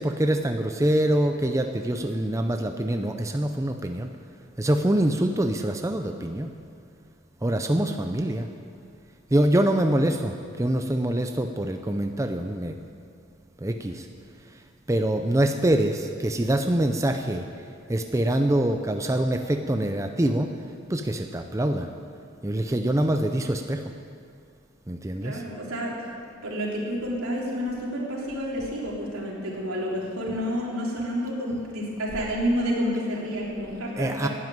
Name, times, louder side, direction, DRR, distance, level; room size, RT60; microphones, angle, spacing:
voice 1, 0.0-4.1 4.6-6.5 7.4-8.5 9.3-12.7 13.6-14.1 14.9-17.5 17.9-20.5 20.9-21.9 22.4-23.8 24.9-25.4 34.0-34.3, right 1 dB, 15° right, 5 dB, 0.5 m, -25 dB
voice 2, 25.2-25.9 26.4-34.3, equal, 85° right, -4 dB, 3.4 m, -29 dB
12.5 x 9.3 x 9.2 m, 2.4 s
head